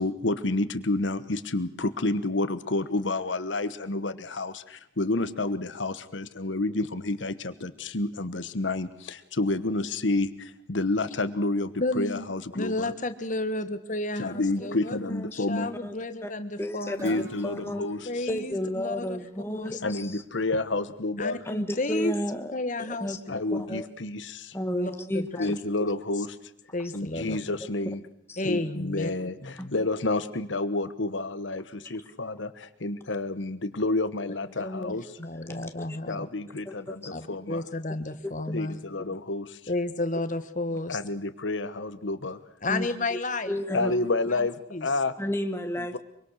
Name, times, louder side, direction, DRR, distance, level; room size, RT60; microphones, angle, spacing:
voice 1, 0.0-12.9 14.2-15.7 17.0-18.3 19.8-21.4 23.3-24.6 25.4-26.4 26.9-28.0 28.4-35.1 36.1-37.6 38.5-39.6 40.9-42.4 43.7-45.1 45.8-46.0, left 2 dB, 80° left, 11 dB, 1.2 m, -29 dB
voice 2, 11.8-12.3 12.5-15.0 15.3-17.2 18.0-19.2 19.5-19.8 21.2-22.1 22.5-23.4 23.7-23.8 24.7-25.5 26.7-27.4 28.4-29.1 29.4-29.5 34.6-34.9 35.2-36.3 37.1-38.8 39.7-41.0 42.6-43.6 44.3-44.5 44.7-44.9, left 2 dB, 40° left, 10 dB, 1.5 m, -32 dB
voice 3, 16.6-17.9 18.3-20.2 21.4-22.5 22.8-23.2 23.5-23.9 24.5-25.6 28.3-28.4 29.6-29.7 35.5-36.0 36.6-37.0 38.2-38.3 39.1-39.2 42.7-43.2 43.5-43.9 45.2-46.0, equal, 15° left, 6 dB, 1.5 m, -32 dB
Guitar, 16.9-20.7, right 1 dB, 15° right, 2.8 m, -51 dB
24.5 x 24.0 x 6.5 m, 0.73 s
head